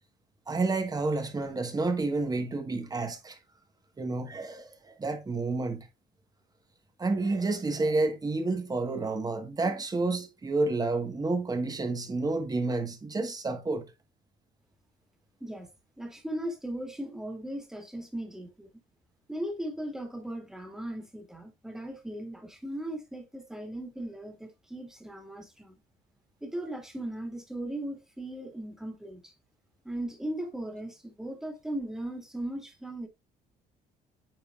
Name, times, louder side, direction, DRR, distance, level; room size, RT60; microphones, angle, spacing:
voice 1, 0.5-3.4 4.0-5.9 7.0-13.9, right 3 dB, 20° right, 1.4 m, -30 dB
voice 2, 16.0-18.7 19.3-25.8 26.4-29.3 29.8-33.1, right 1 dB, 5° right, 2.0 m, -38 dB
9.0 x 4.5 x 2.4 m
cardioid pair, 110°, 17 cm